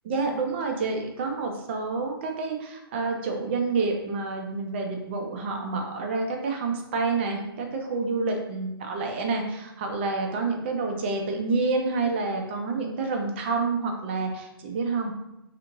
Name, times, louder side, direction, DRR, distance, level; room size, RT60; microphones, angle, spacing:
voice 1, 0.1-15.1, right 3 dB, 30° right, 3 dB, 0.4 m, -28 dB
2.6 x 2.4 x 3.0 m, 0.91 s
figure-of-eight pair, 130°, 13 cm